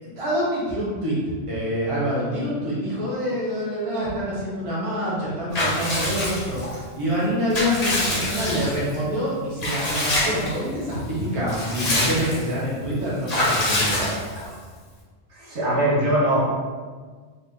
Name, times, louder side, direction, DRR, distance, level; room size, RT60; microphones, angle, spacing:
voice 1, 0.0-1.2 1.5-14.0, equal, 30° right, -7 dB, 1.0 m, -26 dB
Water / Bathtub (filling or washing) / Liquid, 5.5-6.8 7.2-9.0 9.6-10.6 10.9-11.0 11.3-12.5 13.3-14.5, left 1 dB, 40° left, 0.9 m, -25 dB
voice 2, 15.3-16.4, right 1 dB, 80° right, -7 dB, 1.4 m, -21 dB
2.8 x 2.6 x 3.7 m, 1.5 s
omnidirectional pair, 1.2 m